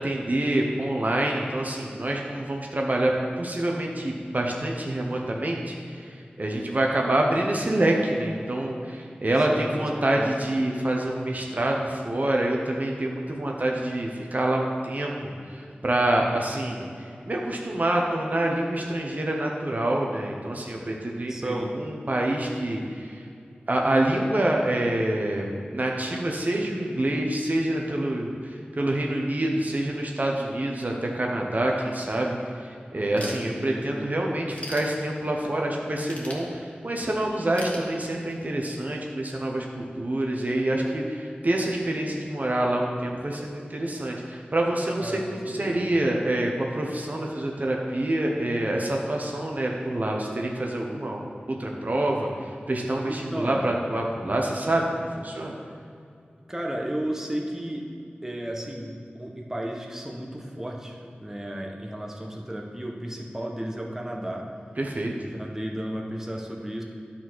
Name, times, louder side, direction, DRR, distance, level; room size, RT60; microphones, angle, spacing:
voice 1, 0.0-23.2 23.7-55.5 64.8-65.1, right 1 dB, 45° right, 0 dB, 1.0 m, -27 dB
voice 2, 9.5-10.3 21.3-21.7 33.2-33.8 45.0-45.9 53.1-53.6 56.5-57.9 58.2-64.5 65.2-66.8, right 1 dB, 10° right, 0 dB, 1.2 m, -34 dB
Ratchet pawl / Tools, 33.2-34.0 34.3-35.5 36.0-37.0 37.5-38.5, left 1 dB, 35° left, 1.7 m, -40 dB
9.8 x 4.3 x 6.2 m, 2.4 s
wide cardioid pair, 45°, 4 cm